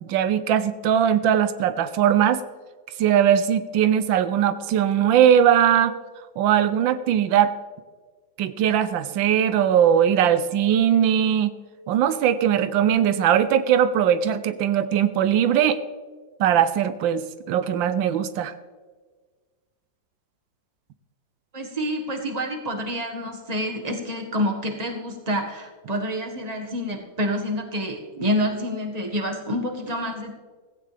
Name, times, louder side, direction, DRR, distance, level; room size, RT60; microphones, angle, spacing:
voice 1, 0.0-2.4 3.0-5.9 6.4-7.5 8.4-11.5 11.9-15.8 16.4-18.5, right 9 dB, 90° right, 12 dB, 1.4 m, -20 dB
voice 2, 21.5-30.4, equal, 20° right, 2 dB, 1.7 m, -28 dB
16.0 x 15.5 x 3.4 m, 1.4 s
omnidirectional pair, 2.0 m